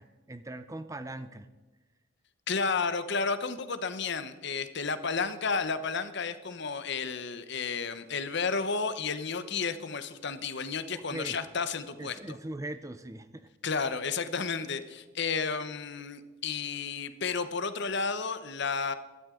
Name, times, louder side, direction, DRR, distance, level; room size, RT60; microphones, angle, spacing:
voice 1, 0.0-1.5 10.9-11.4 12.0-13.5, right 1 dB, 15° right, 11 dB, 0.5 m, -40 dB
voice 2, 2.5-12.4 13.6-18.9, left 5 dB, 55° left, 11 dB, 0.9 m, -32 dB
16.5 x 12.0 x 3.8 m, 1.2 s
head